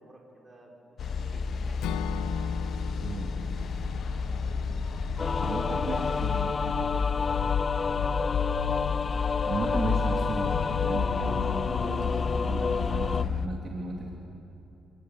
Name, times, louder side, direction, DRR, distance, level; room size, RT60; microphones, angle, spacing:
voice 1, 0.0-2.1 3.3-3.9 5.6-6.5 7.3-8.4, right 2 dB, 25° right, -1 dB, 6.2 m, -51 dB
sound 1, 1.0-13.5, left 5 dB, 55° left, 1.1 m, -31 dB
Acoustic guitar / Strum, 1.8-5.9, left 9 dB, 90° left, 0.9 m, -40 dB
sound 2, 5.2-13.2, left 5 dB, 35° left, 0.5 m, -30 dB
voice 2, 5.4-6.5 9.4-14.2, right 3 dB, 50° right, -1 dB, 3.5 m, -35 dB
27.0 x 18.5 x 9.8 m, 3.0 s
cardioid pair, 90°, 0 cm